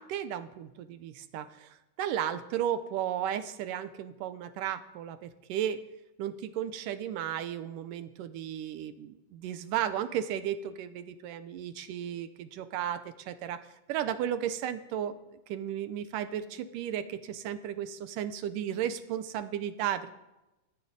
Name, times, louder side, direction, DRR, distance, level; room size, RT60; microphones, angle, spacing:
voice 1, 0.0-5.8 6.2-13.6 13.9-15.2 15.5-20.1, right 10 dB, 80° right, 11 dB, 2.4 m, -34 dB
14.0 x 9.7 x 9.7 m, 0.98 s
omnidirectional pair, 3.9 m